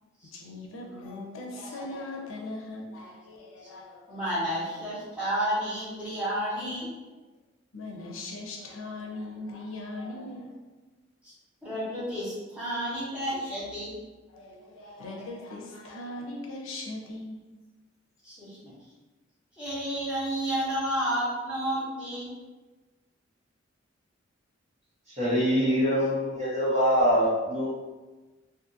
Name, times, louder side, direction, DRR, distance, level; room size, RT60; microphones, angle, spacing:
voice 1, 0.3-4.9 7.7-10.5 14.3-17.5, left 2 dB, 85° left, 0 dB, 0.5 m, -40 dB
voice 2, 4.1-6.9 11.2-11.3 11.6-13.9 18.2-18.7 19.6-22.3, right 1 dB, 5° right, -9 dB, 1.0 m, -31 dB
voice 3, 25.1-27.7, equal, 35° right, -8 dB, 1.0 m, -24 dB
2.5 x 2.5 x 2.6 m, 1.2 s
head